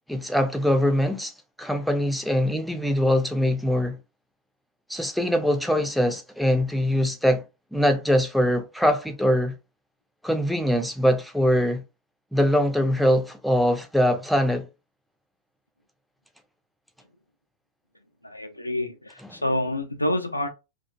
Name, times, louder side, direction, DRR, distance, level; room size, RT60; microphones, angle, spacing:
voice 1, 0.1-1.3 1.6-4.0 4.9-7.4 7.7-9.5 10.2-11.8 12.3-14.7 19.2-19.4, equal, ahead, 0.5 m, -22 dB
voice 2, 18.2-20.5, left 1 dB, 85° left, 0.4 m, -28 dB
2.4 x 2.2 x 2.6 m
figure-of-eight pair, 90°, 0 cm